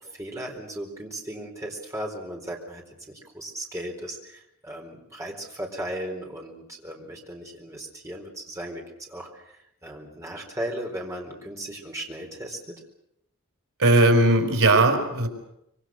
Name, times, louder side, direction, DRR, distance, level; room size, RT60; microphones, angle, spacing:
voice 1, 0.0-9.4 9.8-12.6, right 1 dB, 15° right, 0 dB, 4.2 m, -36 dB
voice 2, 13.8-15.3, right 2 dB, 90° right, 5 dB, 4.8 m, -18 dB
25.5 x 24.5 x 6.5 m, 0.79 s
head